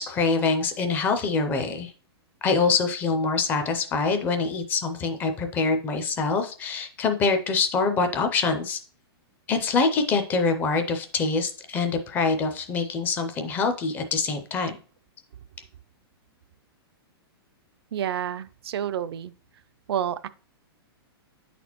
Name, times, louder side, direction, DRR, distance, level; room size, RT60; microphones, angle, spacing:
voice 1, 0.0-1.9 2.4-8.8 9.5-14.7, left 4 dB, 15° left, 0.4 m, -25 dB
voice 2, 17.9-19.3 19.9-20.3, right 10 dB, 75° right, 0.4 m, -29 dB
8.9 x 4.1 x 2.9 m
hypercardioid pair, 165°, 13 cm